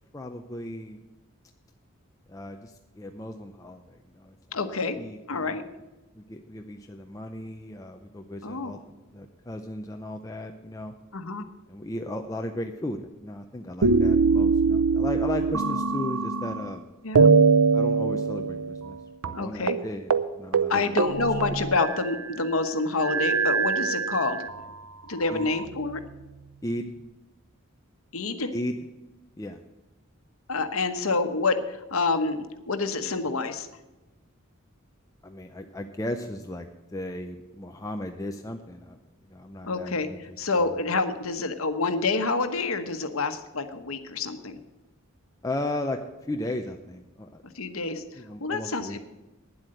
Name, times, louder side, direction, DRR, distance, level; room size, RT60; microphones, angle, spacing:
voice 1, 0.1-1.0 2.3-4.4 5.0-5.6 6.1-8.8 9.1-10.9 11.7-16.8 17.7-20.1 20.4-20.8 25.3-25.5 26.6-26.9 28.5-28.8 29.4-29.6 35.2-39.0 39.3-40.2 40.6-40.7 45.4-47.4 48.1-49.0, left 1 dB, 15° left, 3 dB, 0.6 m, -35 dB
voice 2, 4.5-5.0 5.3-5.6 8.4-8.8 11.1-11.4 17.0-17.3 19.3-19.8 20.7-24.5 25.1-26.0 28.1-28.5 30.5-33.7 39.6-44.6 47.5-49.0, left 3 dB, 75° left, 8 dB, 1.2 m, -28 dB
sound 1, 13.8-16.8 17.2-19.0 19.2-19.4 19.7-19.8 20.1-20.3 20.5-22.3 23.0-24.6 25.3-26.2, right 4 dB, 85° right, 0.6 m, -23 dB
9.9 x 8.0 x 7.8 m, 1.1 s
head